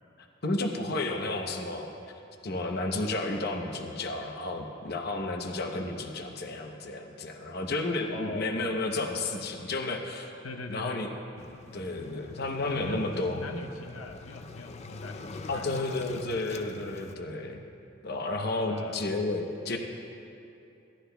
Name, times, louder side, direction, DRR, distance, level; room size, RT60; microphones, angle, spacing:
voice 1, 0.4-1.9 2.4-10.3 10.7-11.1 11.7-13.4 15.5-17.6 18.0-19.8, left 2 dB, 50° left, 3 dB, 0.8 m, -32 dB
voice 2, 8.1-8.8 10.4-11.0 12.6-16.3 18.7-19.1, left 2 dB, 90° left, 3 dB, 0.7 m, -41 dB
Waves surf, 11.4-17.1, left 3 dB, 30° left, 0.3 m, -45 dB
17.0 x 11.5 x 2.3 m, 2.7 s
head